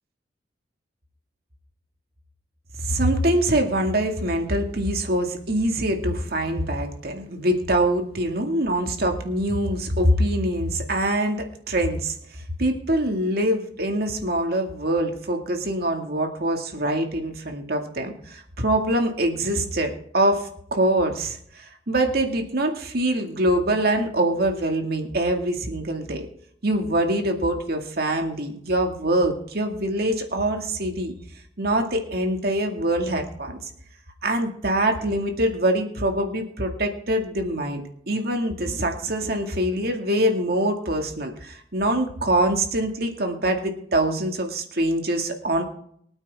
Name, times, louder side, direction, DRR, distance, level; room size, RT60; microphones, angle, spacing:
voice 1, 2.8-12.2 12.6-26.3 26.6-31.1 31.6-33.6 34.2-37.8 38.1-45.6, right 1 dB, 60° right, 4 dB, 2.2 m, -24 dB
24.0 x 9.1 x 3.6 m, 0.68 s
head